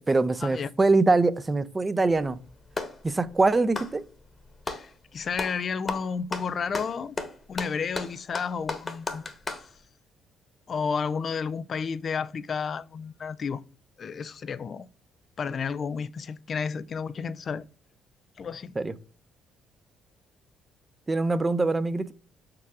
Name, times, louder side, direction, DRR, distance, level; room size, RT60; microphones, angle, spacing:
voice 1, 0.0-2.4 3.0-4.0 18.8-18.9 21.1-22.1, right 3 dB, 25° right, 0.7 m, -23 dB
Clapping, 2.1-3.0 3.6-4.9 5.3-5.6 5.9-9.7, left 3 dB, 30° left, 1.3 m, -34 dB
voice 2, 4.7-7.2 7.5-9.2 10.7-13.6 14.0-14.9 15.4-17.6 18.4-18.8, left 6 dB, 50° left, 0.4 m, -31 dB
5.9 x 4.8 x 3.6 m
hypercardioid pair, 50°, 0 cm